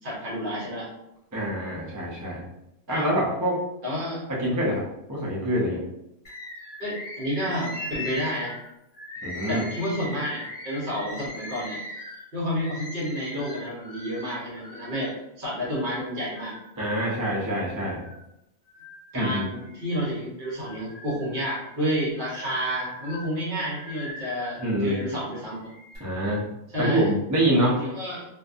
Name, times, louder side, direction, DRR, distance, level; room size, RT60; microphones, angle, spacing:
voice 1, 0.0-0.9 2.9-3.0 3.8-4.2 6.8-8.6 9.5-11.8 12.3-16.6 19.1-25.7 26.7-27.1 27.7-28.3, equal, 45° right, -5 dB, 1.0 m, -30 dB
voice 2, 1.3-2.4 2.9-3.6 4.3-4.8 5.1-5.8 9.2-9.6 16.8-18.0 19.1-19.5 24.6-25.0 26.0-26.4 26.8-27.8, right 1 dB, 30° right, -5 dB, 0.4 m, -25 dB
Bird, 6.2-15.2 15.7-16.7 17.2-18.2 18.7-20.0 20.5-24.8 25.5-26.0, left 1 dB, 40° left, 1.4 m, -40 dB
2.6 x 2.5 x 2.4 m, 0.87 s
omnidirectional pair, 1.3 m